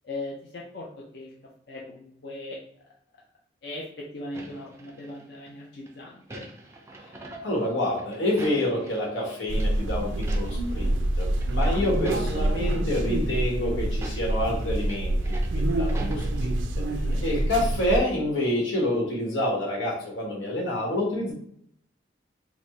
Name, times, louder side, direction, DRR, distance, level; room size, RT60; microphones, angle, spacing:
voice 1, 0.0-1.3 1.7-2.6 3.1-3.2 3.6-6.5 11.6-11.9 17.0-17.3, left 2 dB, 60° left, -3 dB, 0.5 m, -39 dB
sound 1, 4.3-5.5 5.9-9.3 9.5-9.7 10.1-10.8 11.0-12.8 13.2-13.4 13.9-16.9 17.1-17.2, right 1 dB, 15° right, 0.4 m, -43 dB
voice 2, 7.4-16.7 17.2-21.3, left 1 dB, 90° left, -2 dB, 1.3 m, -28 dB
sound 2, 9.5-18.0, right 1 dB, 85° right, 0.4 m, -26 dB
4.2 x 2.1 x 3.1 m, 0.68 s
head